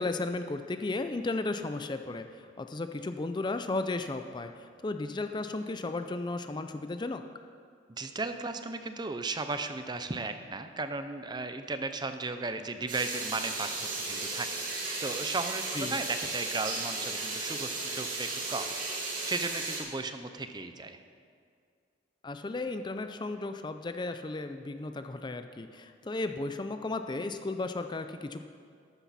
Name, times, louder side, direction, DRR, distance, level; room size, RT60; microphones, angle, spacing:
voice 1, 0.0-7.2 15.7-15.9 22.2-28.4, left 2 dB, 25° left, 8 dB, 0.4 m, -34 dB
voice 2, 7.9-14.7 15.0-21.0, right 3 dB, 25° right, 8 dB, 0.6 m, -36 dB
sound 1, 12.9-19.8, right 3 dB, 45° right, 2.6 m, -35 dB
14.0 x 11.5 x 4.2 m, 2.2 s
head